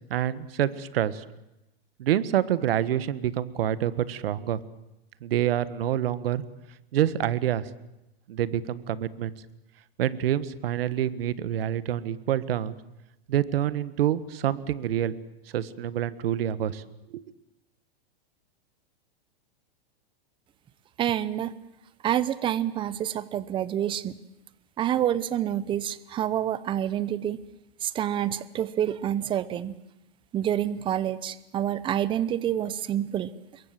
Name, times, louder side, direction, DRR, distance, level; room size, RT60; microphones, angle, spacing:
voice 1, 0.1-1.2 2.0-4.6 5.2-6.4 6.9-7.7 8.3-9.3 10.0-12.8 13.3-15.1 15.5-16.8 17.1-17.2, right 11 dB, 70° right, 16 dB, 1.6 m, -27 dB
voice 2, 21.0-21.5 22.0-24.1 24.8-27.4 27.8-29.8 30.3-33.3, right 11 dB, 15° right, 17 dB, 0.8 m, -27 dB
26.0 x 22.5 x 7.7 m, 0.90 s
supercardioid pair, 155°, 30 cm